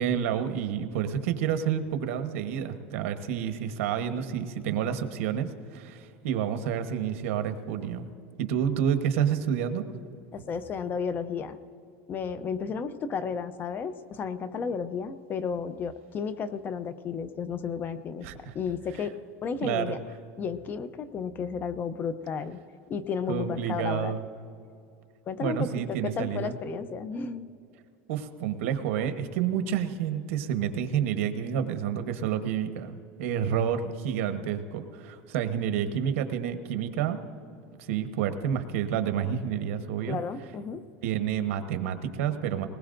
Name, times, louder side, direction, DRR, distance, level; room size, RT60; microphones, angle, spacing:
voice 1, 0.0-8.1 8.4-9.8 18.2-18.4 19.6-20.0 23.3-24.2 25.4-26.6 28.1-37.2 37.8-40.2 41.0-42.7, right 8 dB, 80° right, 8 dB, 1.1 m, -29 dB
voice 2, 10.3-11.6 12.1-18.3 18.5-20.0 20.4-22.6 22.9-24.2 25.3-27.5 40.1-40.8, left 6 dB, 25° left, 12 dB, 0.6 m, -33 dB
20.5 x 20.0 x 2.6 m, 2.5 s
supercardioid pair, 150°, 7 cm